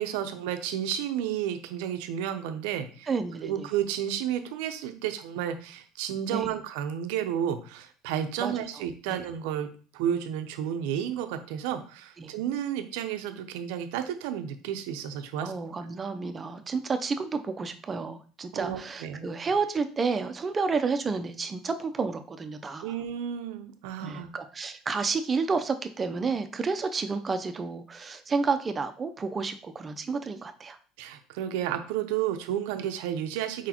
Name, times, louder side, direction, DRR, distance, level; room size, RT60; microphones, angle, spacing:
voice 1, 0.0-3.1 3.4-9.7 9.9-15.5 18.5-19.3 22.8-24.3 31.0-33.7, right 10 dB, 75° right, 8 dB, 0.6 m, -32 dB
voice 2, 3.1-3.7 6.3-6.5 8.4-8.5 9.1-9.2 12.2-12.3 15.4-22.9 24.0-30.8, right 4 dB, 30° right, 9 dB, 0.6 m, -30 dB
4.6 x 3.9 x 2.9 m, 0.41 s
supercardioid pair, 85°, 0 cm